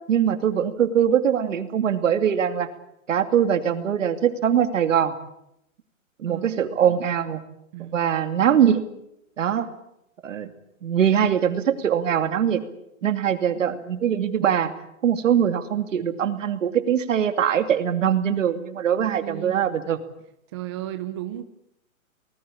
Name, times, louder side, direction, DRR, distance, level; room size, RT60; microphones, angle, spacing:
voice 1, 0.1-2.7 3.1-5.2 6.2-7.4 7.8-8.9 9.4-9.7 10.2-10.5 10.8-12.6 13.0-14.7 15.0-20.0, right 9 dB, 60° right, 9 dB, 2.7 m, -22 dB
voice 2, 6.3-7.0 7.7-8.0 13.0-13.8 19.0-19.7 20.5-21.4, right 13 dB, 20° right, 8 dB, 0.9 m, -36 dB
25.0 x 19.5 x 8.6 m, 0.81 s
hypercardioid pair, 165°, 42 cm